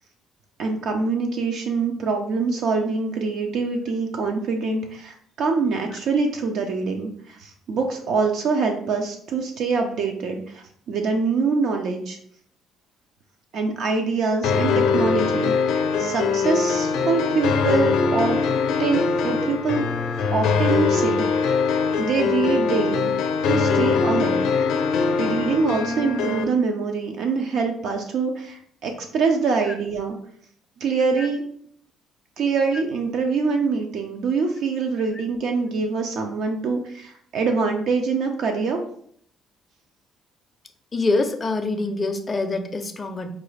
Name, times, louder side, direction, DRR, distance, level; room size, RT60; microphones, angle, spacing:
voice 1, 0.6-12.2 13.5-18.4 18.8-19.9 20.3-21.6 22.0-23.1 23.5-24.4 25.2-30.2 30.8-31.4 32.4-38.8, right 4 dB, 60° right, 3 dB, 0.5 m, -24 dB
sound 1, 14.4-26.4, left 5 dB, 75° left, 0.5 m, -22 dB
voice 2, 40.9-43.3, left 3 dB, 20° left, 6 dB, 0.4 m, -25 dB
4.8 x 2.3 x 3.2 m, 0.62 s
cardioid pair, 145°, 0 cm